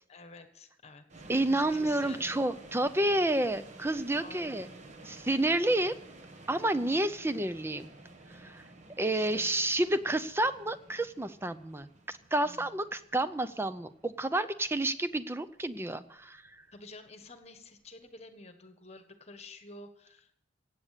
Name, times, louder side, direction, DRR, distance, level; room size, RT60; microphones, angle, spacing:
voice 1, 0.1-1.1 1.4-2.3 4.2-4.9 6.8-7.1 9.1-9.5 12.4-12.8 16.7-20.3, left 3 dB, 30° left, 8 dB, 1.3 m, -51 dB
sound 1, 1.1-18.1, right 2 dB, 35° right, 1.2 m, -52 dB
voice 2, 1.3-4.7 5.0-6.0 6.5-7.9 8.3-8.7 9.0-16.6, right 1 dB, 10° right, 12 dB, 0.5 m, -30 dB
16.5 x 8.6 x 6.7 m, 0.74 s
head